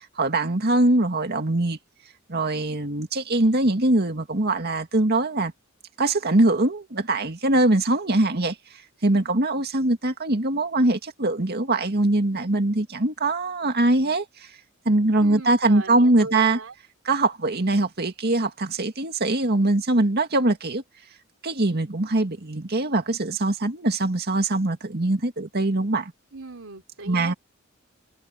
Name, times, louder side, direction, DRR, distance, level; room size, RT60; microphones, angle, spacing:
voice 1, 0.2-1.8 2.3-5.5 6.0-8.6 9.0-14.3 14.9-16.6 17.0-20.8 21.4-26.1 27.1-27.3, right 2 dB, 50° right, 2.2 m, -22 dB
voice 2, 15.2-16.7 26.3-27.3, right 3 dB, 70° right, 3.4 m, -38 dB
head